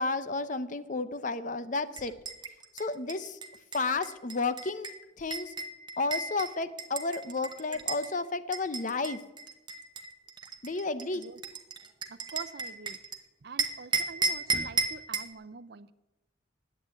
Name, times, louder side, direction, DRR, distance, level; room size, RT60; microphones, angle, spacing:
voice 1, 0.0-2.1 2.7-3.4 3.7-4.9 5.2-5.5 6.0-9.2 10.6-11.2, left 3 dB, 45° left, 13 dB, 0.7 m, -32 dB
sound 1, 1.9-8.1 8.5-13.2 13.6-15.3, right 4 dB, 25° right, 0.9 m, -34 dB
voice 2, 12.1-13.0 13.4-15.9, right 4 dB, 60° right, 14 dB, 0.6 m, -45 dB
10.5 x 8.3 x 8.9 m, 1.0 s
head